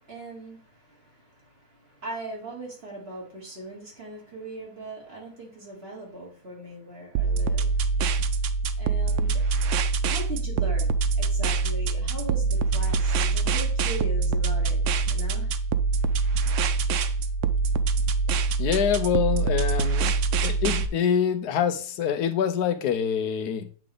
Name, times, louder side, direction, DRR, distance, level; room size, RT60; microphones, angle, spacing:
voice 1, 0.0-7.9 8.8-9.4 10.1-15.5, right 1 dB, 40° right, 2.5 m, -40 dB
sound 1, 7.1-20.9, right 4 dB, 70° right, 0.7 m, -24 dB
voice 2, 18.6-20.1 20.4-23.7, left 8 dB, 85° left, 1.2 m, -25 dB
8.6 x 3.8 x 3.5 m
omnidirectional pair, 1.7 m